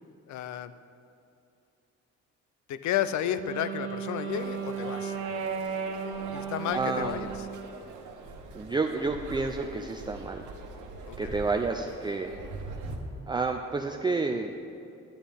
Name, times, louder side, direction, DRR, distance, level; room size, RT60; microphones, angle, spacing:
voice 1, 0.3-0.7 2.7-5.2 6.3-7.5 11.1-11.4, left 10 dB, 70° left, 12 dB, 0.5 m, -32 dB
Wind instrument woodwind instrument, 3.2-7.7, right 6 dB, 50° right, 1.1 m, -35 dB
sound 1, 4.3-13.0, right 3 dB, 85° right, 1.1 m, -43 dB
voice 2, 6.7-7.3 8.5-10.4 11.2-12.3 13.3-14.5, right 3 dB, 15° right, 3 dB, 0.4 m, -30 dB
11.0 x 9.2 x 3.5 m, 2.7 s
cardioid pair, 90°, 30 cm